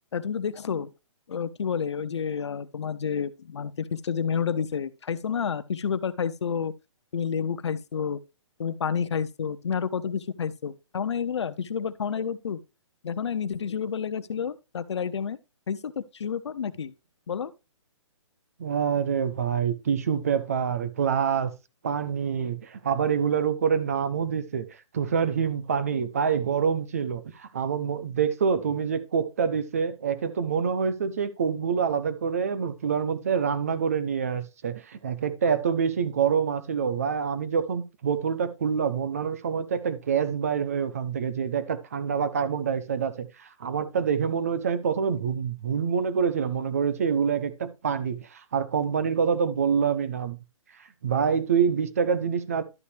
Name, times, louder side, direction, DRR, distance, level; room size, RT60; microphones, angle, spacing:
voice 1, 0.1-0.9 1.3-6.7 7.1-8.2 8.6-12.6 13.0-15.4 15.7-16.9 17.3-17.5, left 7 dB, 60° left, 0.7 m, -30 dB
voice 2, 18.6-21.5 21.8-24.6 24.9-50.4 51.0-52.6, right 7 dB, 30° right, 0.6 m, -26 dB
11.5 x 5.6 x 3.3 m
hypercardioid pair, 180°, 16 cm